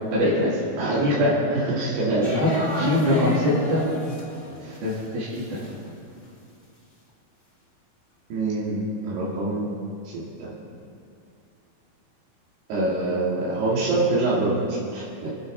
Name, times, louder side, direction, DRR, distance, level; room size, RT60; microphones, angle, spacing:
voice 1, 0.1-0.6 1.0-1.3 2.3-2.5 2.8-3.8 4.6-5.6, left 1 dB, 70° right, -11 dB, 4.9 m, -22 dB
voice 2, 0.8-1.2 1.5-2.3 2.8-2.9 8.3-9.7 10.0-10.5 12.7-15.3, right 2 dB, 85° right, -7 dB, 4.5 m, -25 dB
sound 1, 2.2-5.0 5.3-6.0, equal, 15° left, 2.4 m, -32 dB
29.0 x 9.7 x 4.0 m, 2.4 s
omnidirectional pair, 4.5 m